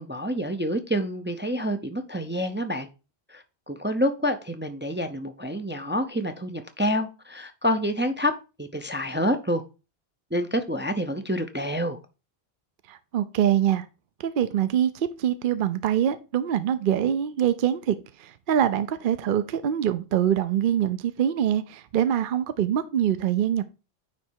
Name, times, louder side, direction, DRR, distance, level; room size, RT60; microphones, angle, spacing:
voice 1, 0.0-2.9 3.3-8.3 8.6-9.6 10.3-12.0, equal, 15° right, 0.4 m, -27 dB
voice 2, 12.9-13.9 14.2-23.7, right 10 dB, 60° right, 0.7 m, -24 dB
9.5 x 3.2 x 4.6 m
omnidirectional pair, 1.1 m